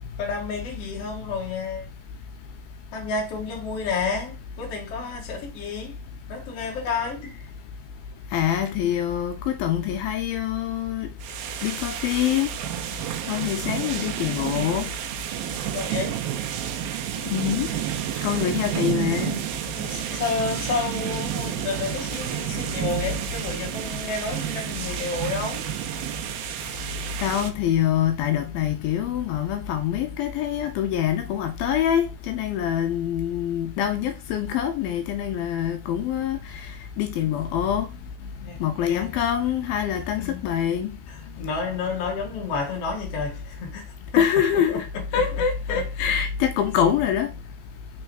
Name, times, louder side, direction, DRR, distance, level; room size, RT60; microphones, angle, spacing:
voice 1, 0.2-1.9 2.9-6.0 6.3-7.4 13.1-13.4 15.4-16.2 18.3-18.6 19.7-25.7 38.4-39.1 40.2-40.4 41.1-44.2 44.5-45.9, left 4 dB, 50° left, 2.2 m, -31 dB
voice 2, 8.3-11.1 11.6-12.5 13.3-14.9 17.3-17.7 18.2-19.4 27.2-36.4 37.0-37.9 38.6-41.0 44.2-44.9 45.1-47.3, left 9 dB, 80° left, 2.6 m, -25 dB
sound 1, 11.2-27.5, right 11 dB, 80° right, 2.4 m, -30 dB
6.1 x 3.6 x 4.5 m
omnidirectional pair, 4.3 m